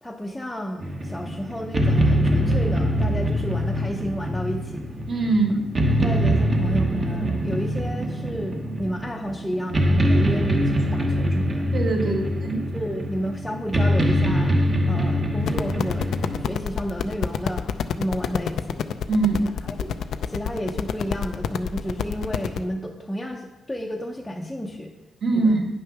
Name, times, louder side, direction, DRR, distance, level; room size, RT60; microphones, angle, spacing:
voice 1, 0.0-4.9 6.0-11.7 12.0-12.2 12.5-17.7 18.0-18.9 19.4-19.9 20.3-24.9 25.3-25.6, equal, 5° left, -2 dB, 0.7 m, -31 dB
sound 1, 0.8-16.4, equal, 25° right, 1.0 m, -23 dB
voice 2, 5.1-5.7 11.7-12.6 19.1-19.5 25.2-25.7, right 3 dB, 45° right, 1 dB, 1.8 m, -22 dB
sound 2, 15.4-22.6, left 8 dB, 70° left, 0.5 m, -28 dB
9.3 x 6.4 x 5.9 m, 0.98 s
wide cardioid pair, 155°, 0 cm